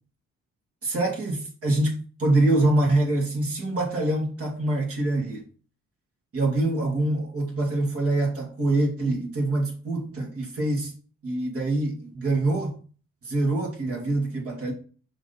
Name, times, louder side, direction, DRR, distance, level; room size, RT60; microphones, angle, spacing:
voice 1, 0.8-5.4 6.3-10.9 11.2-12.8 13.2-14.7, right 2 dB, 50° right, 2.6 m, -25 dB
5.8 x 4.2 x 5.7 m
cardioid pair, 90°, 30 cm